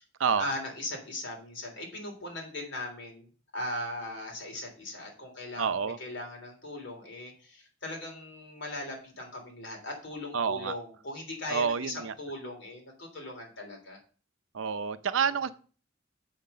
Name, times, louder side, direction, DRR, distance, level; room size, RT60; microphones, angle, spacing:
voice 1, 0.4-3.3 3.5-14.0, left 1 dB, 65° left, 1 dB, 3.2 m, -39 dB
voice 2, 5.6-6.0 10.3-10.7 11.5-12.1 14.5-15.5, right 6 dB, 80° right, 12 dB, 0.6 m, -28 dB
7.2 x 5.8 x 6.6 m, 0.40 s
head